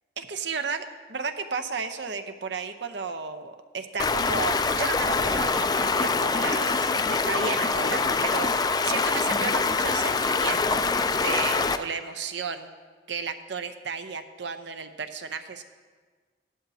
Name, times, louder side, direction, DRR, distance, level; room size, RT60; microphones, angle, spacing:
voice 1, 0.2-8.5 8.8-10.9 11.2-12.7 13.1-15.6, right 5 dB, 70° right, 8 dB, 0.8 m, -33 dB
Stream, 4.0-11.8, left 4 dB, 20° left, 0.3 m, -24 dB
16.5 x 12.0 x 2.8 m, 1.4 s
head